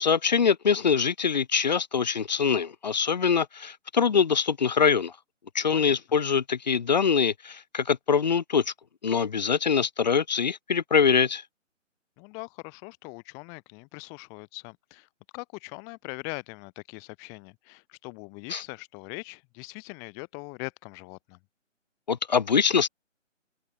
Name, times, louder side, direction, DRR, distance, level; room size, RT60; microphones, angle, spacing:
voice 1, 0.0-5.1 5.6-8.6 9.0-11.4 18.5-18.6 22.1-22.9, left 6 dB, 35° left, 1.8 m, -24 dB
voice 2, 12.2-21.4, left 37 dB, 10° left, 1.4 m, -41 dB
figure-of-eight pair, 150°, 39 cm